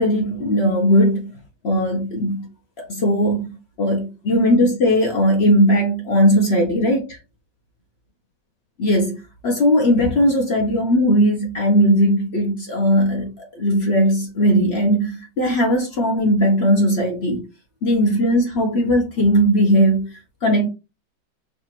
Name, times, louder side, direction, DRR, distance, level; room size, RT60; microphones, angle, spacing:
voice 1, 0.0-1.3 1.6-2.5 2.8-7.2 8.8-9.2 9.4-17.4 17.8-20.7, equal, 55° left, 0.7 m, -18 dB
5.0 x 2.5 x 2.9 m
omnidirectional pair, 2.2 m